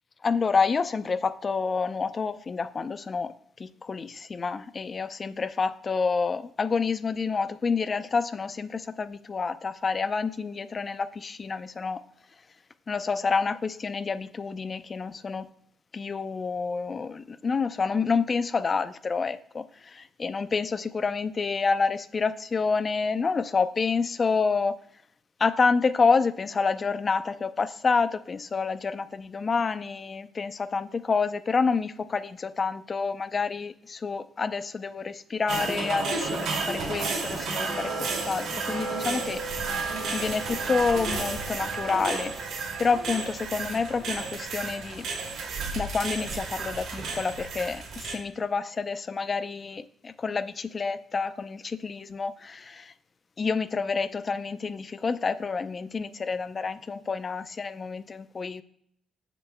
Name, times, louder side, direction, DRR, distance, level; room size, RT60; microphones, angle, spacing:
voice 1, 0.2-3.3 3.6-12.0 12.9-15.5 15.9-24.8 25.4-39.4 40.1-42.3 42.8-45.1 45.7-52.9 53.4-58.6, left 5 dB, 35° left, 13 dB, 0.5 m, -28 dB
sound 1, 35.5-48.2, right 4 dB, 70° right, 2.4 m, -32 dB
17.0 x 6.9 x 2.2 m, 0.70 s
cardioid pair, 90°, 0 cm